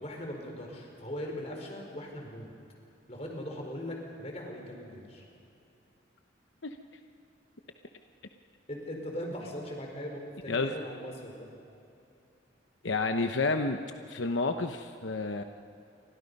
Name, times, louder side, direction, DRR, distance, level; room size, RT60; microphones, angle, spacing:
voice 1, 0.0-2.5 3.1-5.2 8.7-11.5, equal, 35° left, 1 dB, 4.6 m, -40 dB
voice 2, 12.8-15.4, left 3 dB, 85° left, 6 dB, 1.0 m, -30 dB
29.5 x 24.5 x 5.5 m, 2.7 s
head